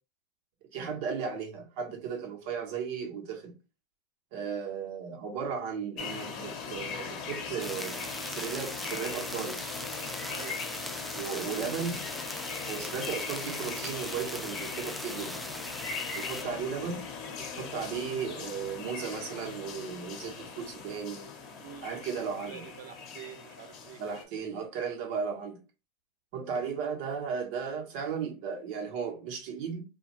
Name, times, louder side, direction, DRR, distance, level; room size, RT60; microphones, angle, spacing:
voice 1, 0.7-3.5 4.3-9.6 11.1-12.0 12.7-15.5 16.1-17.1 17.4-21.3 21.8-22.6 24.0-25.6 26.3-29.8, right 6 dB, 65° right, 0.9 m, -35 dB
sound 1, 6.0-24.2, left 5 dB, 50° left, 0.7 m, -40 dB
sound 2, 7.6-16.4, equal, ahead, 0.3 m, -40 dB
voice 2, 10.3-10.7 21.6-24.3, right 10 dB, 80° right, 0.4 m, -48 dB
2.5 x 2.2 x 2.9 m
supercardioid pair, 110°, 0 cm